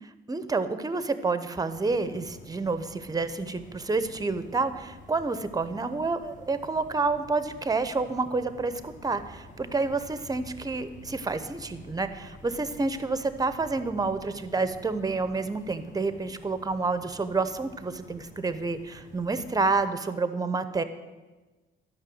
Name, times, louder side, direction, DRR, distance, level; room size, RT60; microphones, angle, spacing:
voice 1, 0.3-20.8, right 3 dB, 20° right, 11 dB, 0.8 m, -29 dB
sound 1, 1.7-19.8, left 2 dB, 40° left, 1.6 m, -50 dB
12.5 x 5.7 x 7.8 m, 1.2 s
cardioid pair, 90°, 20 cm